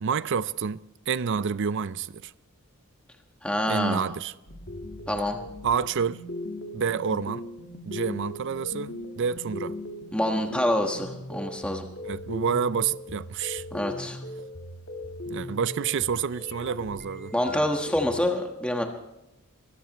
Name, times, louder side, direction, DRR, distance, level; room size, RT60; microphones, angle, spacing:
voice 1, 0.0-2.3 3.7-4.3 5.6-6.2 6.7-7.5 7.8-9.8 12.0-13.6 15.3-17.3, right 6 dB, 60° right, 0.5 m, -28 dB
voice 2, 3.4-4.0 5.1-5.4 10.1-11.9 13.7-14.2 17.3-18.8, left 1 dB, 5° left, 1.4 m, -26 dB
sound 1, 4.5-18.3, left 1 dB, 55° left, 1.6 m, -39 dB
24.0 x 13.0 x 3.1 m
head